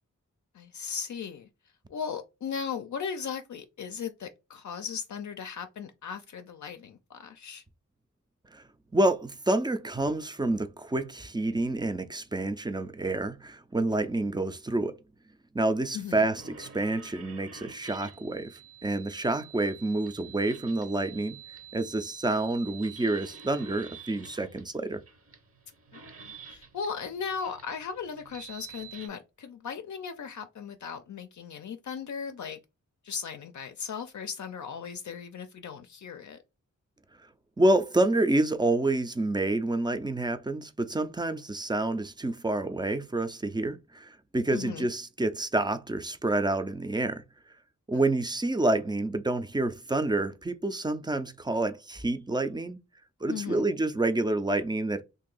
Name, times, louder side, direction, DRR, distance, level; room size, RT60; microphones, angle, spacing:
voice 1, 0.5-1.5 1.9-7.6 15.9-16.3 25.9-32.6 33.0-36.4 44.5-44.9 47.9-48.0 53.3-53.6, left 6 dB, 70° left, 0.5 m, -37 dB
voice 2, 8.9-15.0 15.5-21.4 21.7-25.0 37.6-47.2 47.9-52.8 53.2-55.0, right 2 dB, 15° right, 0.4 m, -28 dB
sound 1, 16.3-29.1, right 7 dB, 45° right, 0.8 m, -49 dB
2.8 x 2.6 x 3.8 m
wide cardioid pair, 100°, 31 cm